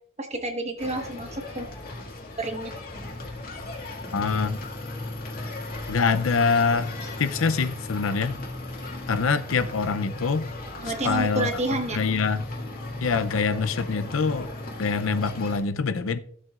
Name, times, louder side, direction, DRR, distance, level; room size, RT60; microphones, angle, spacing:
voice 1, 0.2-1.7 2.4-2.7 10.8-12.0, right 2 dB, 35° right, 1.3 m, -29 dB
sound 1, 0.8-15.6, left 2 dB, 45° left, 2.1 m, -36 dB
voice 2, 4.1-4.6 5.9-6.9 7.2-8.4 9.1-10.5 11.0-11.5 11.9-12.5 13.0-14.5 14.8-16.2, left 5 dB, 70° left, 0.6 m, -24 dB
15.5 x 7.5 x 2.4 m
head